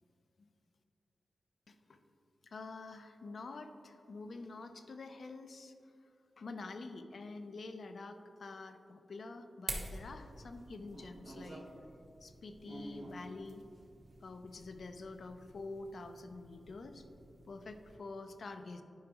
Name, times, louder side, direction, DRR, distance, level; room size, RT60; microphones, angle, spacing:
voice 1, 1.7-2.0 2.4-5.7 6.4-11.7 12.2-13.6 14.2-17.1 17.5-18.8, left 3 dB, 65° left, 8 dB, 0.5 m, -47 dB
sound 1, 9.7-18.0, right 2 dB, 55° right, 1.0 m, -49 dB
11.0 x 5.1 x 3.0 m, 2.6 s
wide cardioid pair, 150°, 0 cm